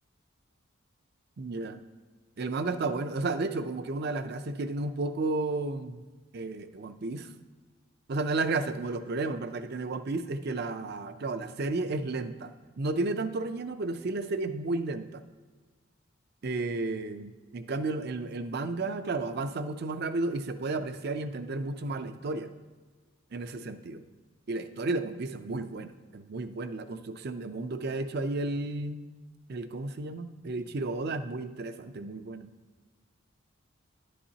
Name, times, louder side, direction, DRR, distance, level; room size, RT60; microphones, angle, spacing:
voice 1, 1.4-1.8 2.4-6.0 6.3-7.3 8.1-15.2 16.4-22.5 23.3-24.0 24.5-29.0 29.5-32.5, right 3 dB, 50° right, 10 dB, 0.5 m, -32 dB
11.0 x 8.6 x 2.8 m, 1.4 s
head